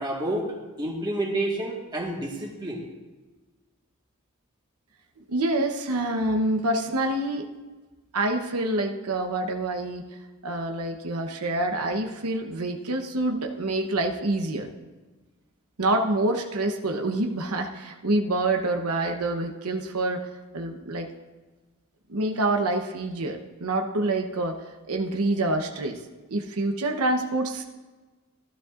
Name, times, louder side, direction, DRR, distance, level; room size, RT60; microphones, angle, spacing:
voice 1, 0.0-2.8, right 1 dB, 20° right, -1 dB, 1.6 m, -29 dB
voice 2, 5.3-7.5 8.1-10.0 10.4-14.7 15.8-20.3 20.5-21.1 22.1-24.6 24.9-26.0 26.3-27.6, right 2 dB, 85° right, 4 dB, 0.9 m, -26 dB
14.5 x 12.0 x 2.5 m, 1.3 s
head